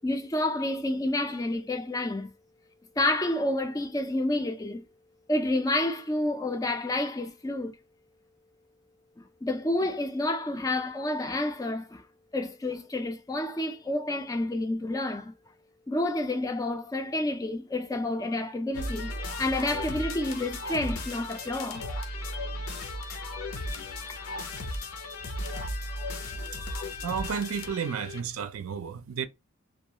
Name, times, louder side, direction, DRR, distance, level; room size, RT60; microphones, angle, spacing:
voice 1, 0.0-2.3 3.0-4.9 5.3-7.8 9.2-12.0 12.3-15.3 15.9-19.1 19.4-21.9, left 1 dB, 15° left, 0.3 m, -29 dB
sound 1, 18.7-28.2, left 1 dB, 80° left, 0.6 m, -35 dB
voice 2, 27.0-29.3, right 7 dB, 75° right, 0.4 m, -32 dB
2.3 x 2.3 x 2.8 m
head